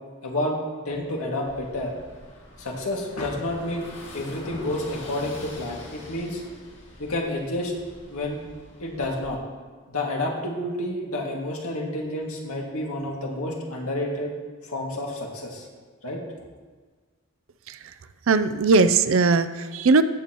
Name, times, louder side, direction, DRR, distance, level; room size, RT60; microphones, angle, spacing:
voice 1, 0.2-0.6 0.9-2.0 2.6-3.9 4.1-6.4 7.0-7.7 8.1-8.4 8.8-9.4 9.9-14.3 14.7-15.7 16.0-16.2, left 1 dB, 80° left, -1 dB, 2.1 m, -29 dB
Car passing by / Engine, 1.5-9.4, left 1 dB, 55° left, 2.2 m, -44 dB
voice 2, 18.3-20.0, right 4 dB, 65° right, 11 dB, 0.5 m, -19 dB
16.0 x 8.5 x 3.0 m, 1.4 s
head